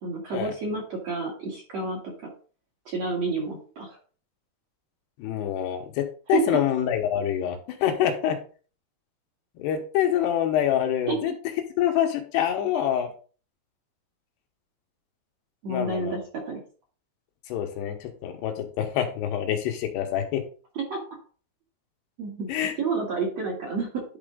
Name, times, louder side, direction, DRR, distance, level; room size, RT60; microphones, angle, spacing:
voice 1, 0.0-2.3 2.9-4.0 6.3-6.6 11.1-11.3 15.6-16.6 20.7-21.0 22.2-22.5 22.8-24.0, right 4 dB, 50° right, -2 dB, 2.2 m, -29 dB
voice 2, 5.2-8.4 9.6-11.3 11.8-13.1 15.7-16.1 17.5-20.4 22.5-22.7, left 10 dB, 80° left, 4 dB, 3.0 m, -26 dB
11.0 x 4.3 x 3.8 m, 0.39 s
omnidirectional pair, 4.9 m